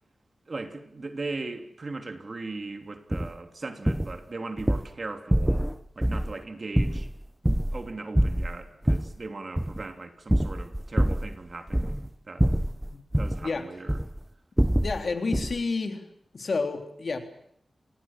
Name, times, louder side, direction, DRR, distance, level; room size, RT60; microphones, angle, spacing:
voice 1, 0.5-7.1 7.5-12.5 13.1-14.0, right 3 dB, 50° right, 3.1 m, -38 dB
sound 1, 3.1-3.3 3.9-4.2 4.6-4.9 5.3-5.7 6.0-6.3 6.8-7.9 8.1-9.1 9.6-9.8 10.3-11.3 11.7-12.1 12.4-13.4 13.9-14.2 14.6-15.0 15.3-15.6, right 1 dB, 10° right, 0.9 m, -25 dB
voice 2, 14.8-16.0 16.3-17.2, left 4 dB, 60° left, 3.6 m, -30 dB
28.5 x 20.5 x 7.6 m
cardioid pair, 65°, 0 cm